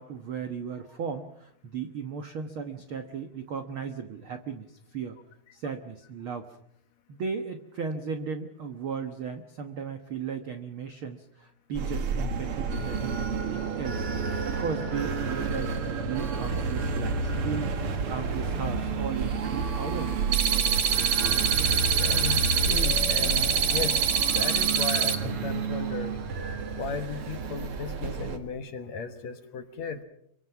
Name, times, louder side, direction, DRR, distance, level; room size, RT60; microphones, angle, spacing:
voice 1, 0.0-5.2 5.5-6.6 7.1-14.1 14.5-17.7 18.1-20.2, right 6 dB, 90° right, 7 dB, 1.1 m, -36 dB
sound 1, 11.7-28.4, right 4 dB, 50° right, 2.0 m, -30 dB
sound 2, 20.3-25.2, right 7 dB, 65° right, 2.7 m, -25 dB
voice 2, 22.0-24.1 24.3-26.2 26.7-30.0, left 5 dB, 60° left, 8 dB, 2.1 m, -35 dB
26.5 x 24.0 x 5.9 m, 0.74 s
omnidirectional pair, 4.3 m